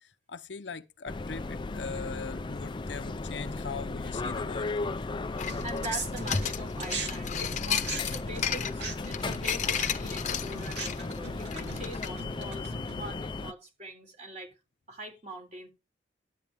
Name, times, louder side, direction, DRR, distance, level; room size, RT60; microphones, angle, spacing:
voice 1, 0.0-4.8, left 5 dB, 70° left, 0.8 m, -41 dB
sound 1, 1.1-13.5, left 3 dB, 25° left, 0.4 m, -35 dB
voice 2, 5.2-14.5 14.9-15.7, right 1 dB, 40° right, 3.8 m, -43 dB
sound 2, 5.4-12.1, left 9 dB, 40° left, 0.9 m, -33 dB
sound 3, 5.5-7.1 7.4-13.1, right 4 dB, 70° right, 2.6 m, -39 dB
12.0 x 8.5 x 3.6 m
head